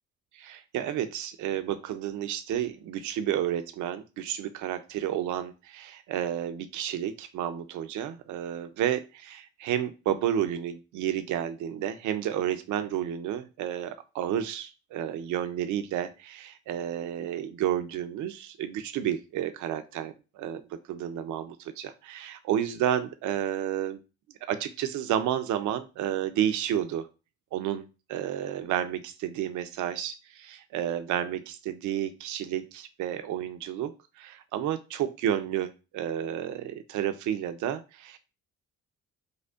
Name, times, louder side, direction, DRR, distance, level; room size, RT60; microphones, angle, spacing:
voice 1, 0.3-24.0 24.4-27.1 27.5-38.2, right 10 dB, 75° right, 10 dB, 0.5 m, -31 dB
5.1 x 2.1 x 2.3 m, 0.31 s
cardioid pair, 90°, 30 cm